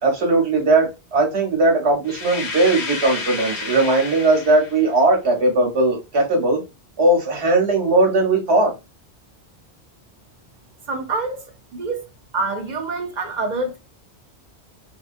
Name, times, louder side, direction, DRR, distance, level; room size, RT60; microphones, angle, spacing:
voice 1, 0.0-6.6 7.0-8.7, right 2 dB, 85° right, 1.3 m, -18 dB
sound 1, 2.1-4.8, left 4 dB, 90° left, 1.1 m, -30 dB
voice 2, 10.9-11.4 11.7-12.0 12.3-13.8, right 3 dB, 50° right, 0.7 m, -26 dB
2.8 x 2.3 x 2.5 m
omnidirectional pair, 1.1 m